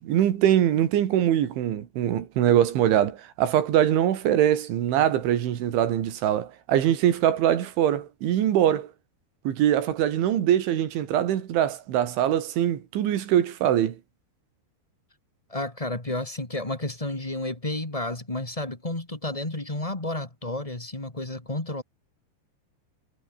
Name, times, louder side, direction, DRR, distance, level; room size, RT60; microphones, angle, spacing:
voice 1, 0.0-8.9 9.5-14.0, right 11 dB, 85° right, 4.7 m, -23 dB
voice 2, 15.5-21.8, left 2 dB, 15° left, 1.2 m, -31 dB
omnidirectional pair, 5.3 m